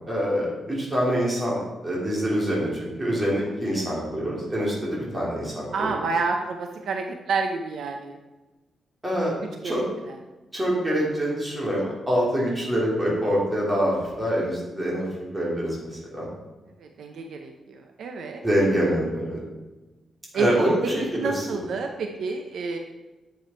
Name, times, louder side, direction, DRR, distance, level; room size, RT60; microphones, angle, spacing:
voice 1, 0.1-6.0 9.0-9.4 9.6-9.8 10.5-15.0 15.3-16.3 18.4-19.4 20.3-21.5, equal, 15° right, -5 dB, 3.3 m, -25 dB
voice 2, 5.7-8.2 9.6-9.8 16.8-18.5 20.3-20.7 21.2-22.8, right 4 dB, 70° right, 3 dB, 0.8 m, -29 dB
10.5 x 7.3 x 4.5 m, 1.1 s
wide cardioid pair, 145°, 0 cm